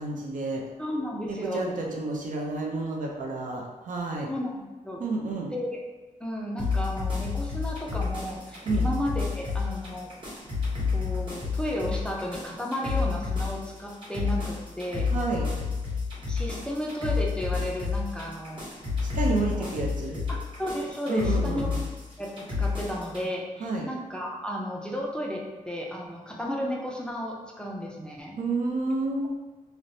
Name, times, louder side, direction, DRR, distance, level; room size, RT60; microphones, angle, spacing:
voice 1, 0.0-0.6 1.3-4.3 5.0-5.5 8.7-8.9 15.1-15.5 19.1-20.2 21.1-21.8 23.6-23.9 28.4-29.3, right 3 dB, 65° right, 0 dB, 0.5 m, -30 dB
voice 2, 0.8-1.6 4.3-5.0 5.5-5.8 6.2-10.1 10.9-15.1 16.3-18.6 19.3-19.7 20.3-21.7 22.2-28.4, equal, 5° left, -2 dB, 0.3 m, -33 dB
sound 1, 6.6-23.2, left 5 dB, 35° right, 1.2 m, -30 dB
3.1 x 2.0 x 2.6 m, 1.2 s
wide cardioid pair, 115°, 14 cm